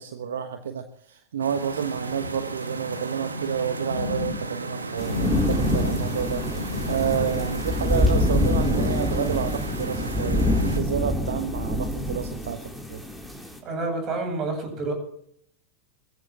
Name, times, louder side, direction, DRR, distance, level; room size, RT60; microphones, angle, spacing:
voice 1, 0.0-13.1, right 8 dB, 70° right, 7 dB, 1.1 m, -30 dB
sound 1, 1.4-10.8, right 3 dB, 85° right, 1.7 m, -35 dB
sound 2, 3.9-9.3 9.6-10.0, left 4 dB, 85° left, 2.2 m, -34 dB
sound 3, 5.0-13.6, left 1 dB, 5° right, 4.3 m, -26 dB
voice 2, 13.6-14.9, right 3 dB, 35° right, 4 dB, 7.9 m, -28 dB
22.5 x 15.0 x 3.0 m, 0.68 s
figure-of-eight pair, 95°, 0 cm